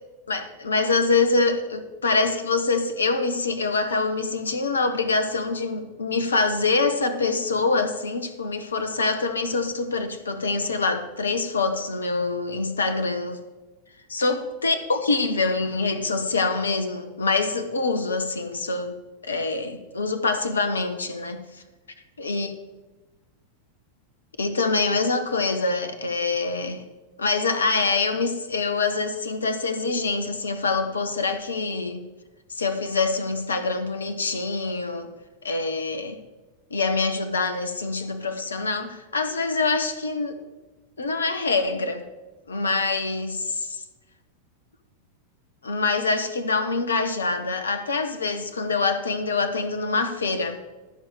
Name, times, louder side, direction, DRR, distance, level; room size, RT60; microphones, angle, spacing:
voice 1, 0.3-13.4 14.1-18.9 19.2-21.4 22.2-22.5 24.4-26.8 27.2-32.0 32.5-35.1 35.4-36.2 36.7-40.4 41.0-42.0 42.5-43.8 45.6-50.6, left 3 dB, 70° left, 8 dB, 0.8 m, -25 dB
12.5 x 4.7 x 6.1 m, 1.2 s
figure-of-eight pair, 90°, 0 cm